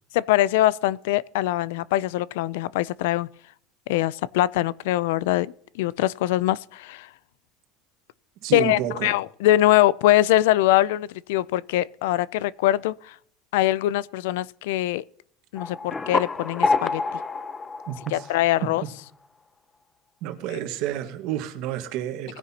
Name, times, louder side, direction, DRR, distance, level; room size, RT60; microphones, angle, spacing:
voice 1, 0.1-3.3 3.9-7.1 8.5-13.1 13.5-15.0 15.5-17.0 18.1-18.8, left 15 dB, 85° left, 0.3 m, -22 dB
voice 2, 8.4-9.2 17.9-18.3 18.6-18.7 20.2-22.4, right 11 dB, 60° right, 1.5 m, -30 dB
sound 1, 15.6-18.9, left 4 dB, 15° left, 0.5 m, -27 dB
19.0 x 9.9 x 2.9 m
cardioid pair, 150°, 0 cm